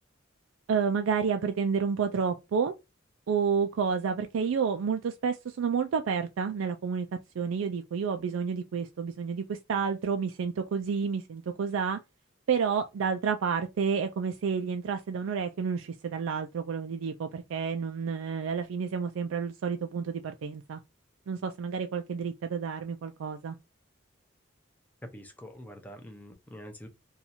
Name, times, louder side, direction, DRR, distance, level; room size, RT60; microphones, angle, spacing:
voice 1, 0.7-2.7 3.3-7.1 7.4-12.0 12.5-20.8 21.3-23.6, right 6 dB, 80° right, 0.4 m, -30 dB
voice 2, 25.0-26.9, equal, 10° left, 0.6 m, -45 dB
2.7 x 2.4 x 4.2 m
head